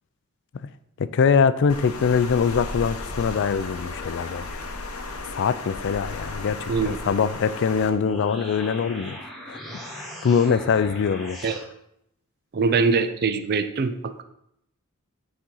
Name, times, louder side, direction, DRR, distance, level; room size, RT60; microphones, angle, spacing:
voice 1, 1.0-4.5 5.3-9.2 9.5-9.6 9.9-11.4, left 6 dB, 55° left, 14 dB, 0.4 m, -23 dB
Water, 1.7-7.9, left 3 dB, 90° left, 0.8 m, -35 dB
sound 1, 7.8-11.7, equal, ahead, 1.6 m, -39 dB
voice 2, 12.5-14.2, right 4 dB, 45° right, 9 dB, 0.4 m, -23 dB
8.5 x 4.3 x 3.8 m, 0.78 s
head